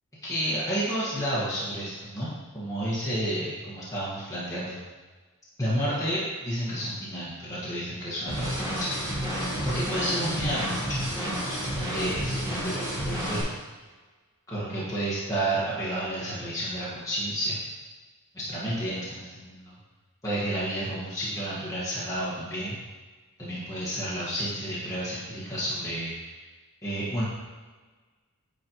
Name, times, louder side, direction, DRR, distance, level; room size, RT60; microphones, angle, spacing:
voice 1, 0.2-4.8 5.6-9.0 9.6-13.4 14.5-17.6 18.3-19.7 20.2-22.8 23.4-26.3 26.8-27.2, right 1 dB, 15° left, -9 dB, 1.6 m, -31 dB
sound 1, 8.3-13.4, equal, 15° right, 2.0 m, -30 dB
9.6 x 4.3 x 3.1 m, 1.3 s
head